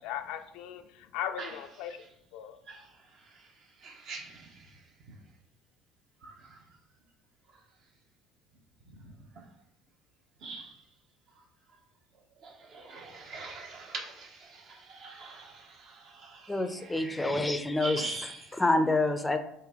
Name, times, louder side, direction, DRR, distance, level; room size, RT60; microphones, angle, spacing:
voice 1, 0.0-2.0 2.3-2.6, left 10 dB, 65° left, 7 dB, 0.4 m, -38 dB
voice 2, 2.7-5.2 6.2-6.6 7.5-7.6 8.9-9.5 10.4-10.8 12.4-17.3 17.8-18.6, right 4 dB, 55° right, 2 dB, 0.9 m, -44 dB
voice 3, 16.5-18.1 18.6-19.4, left 2 dB, 10° left, 7 dB, 0.5 m, -27 dB
3.9 x 2.6 x 3.5 m, 0.76 s
hypercardioid pair, 60°, 0 cm